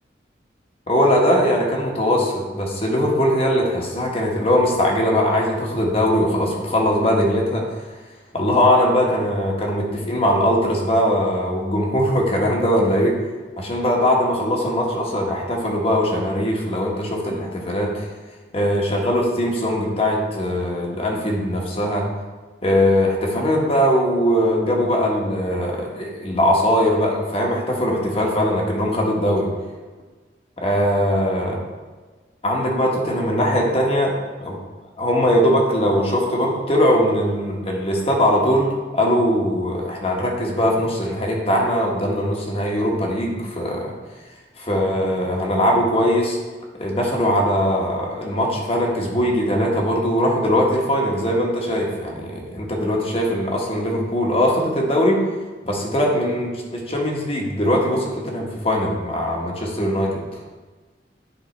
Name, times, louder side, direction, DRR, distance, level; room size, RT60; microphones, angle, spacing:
voice 1, 0.9-7.6 8.3-13.1 13.6-18.1 18.5-22.0 22.6-29.5 30.6-31.6 32.4-34.1 34.4-34.6 35.0-43.9 44.6-46.4 46.8-55.2 55.6-60.2, equal, 35° left, -1 dB, 1.3 m, -20 dB
10.0 x 3.5 x 4.4 m, 1.3 s
head